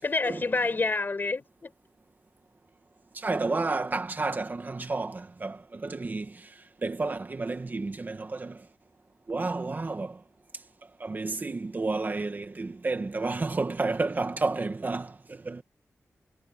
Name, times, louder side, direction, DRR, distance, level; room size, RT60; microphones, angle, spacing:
voice 1, 0.0-1.7, left 3 dB, 40° left, 5.4 m, -28 dB
voice 2, 3.1-6.5 6.8-8.6 9.3-10.2 11.0-15.6, right 3 dB, 35° right, 2.0 m, -31 dB
wide cardioid pair, 135°, 5 cm